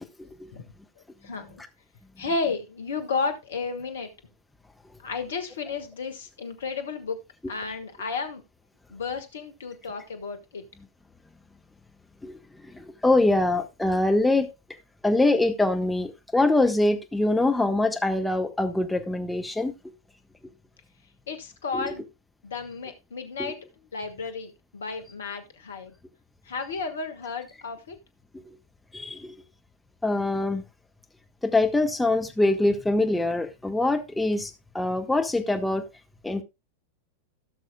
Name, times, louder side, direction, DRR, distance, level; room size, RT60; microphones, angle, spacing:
voice 1, 1.2-1.6 2.2-4.1 5.0-8.4 8.9-10.6 21.3-22.0 22.4-23.6 23.9-26.0 26.4-28.0, left 4 dB, 65° left, 1.6 m, -33 dB
voice 2, 12.7-14.5 15.0-19.7 21.7-21.8 23.4-23.5 28.9-29.3 30.0-30.6 31.4-34.5 34.7-35.8 36.2-36.4, left 2 dB, 5° left, 1.2 m, -23 dB
17.0 x 6.3 x 2.2 m
figure-of-eight pair, 90°, 0 cm